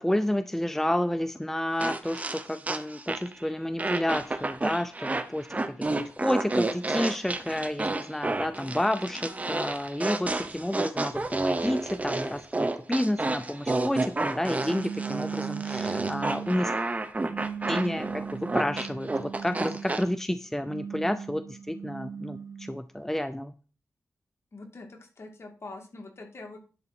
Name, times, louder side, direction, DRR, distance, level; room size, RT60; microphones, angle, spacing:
voice 1, 0.0-16.7 17.7-23.5, left 1 dB, 5° left, 10 dB, 0.5 m, -30 dB
sound 1, 1.8-3.4 3.8-20.0, right 2 dB, 25° right, 0.9 m, -30 dB
sound 2, 14.6-16.6 17.2-19.9 20.5-22.8, right 7 dB, 80° right, 0.4 m, -37 dB
voice 2, 24.5-26.6, left 2 dB, 55° left, 2 dB, 2.4 m, -44 dB
11.0 x 3.9 x 5.9 m, 0.36 s
wide cardioid pair, 80°, 5 cm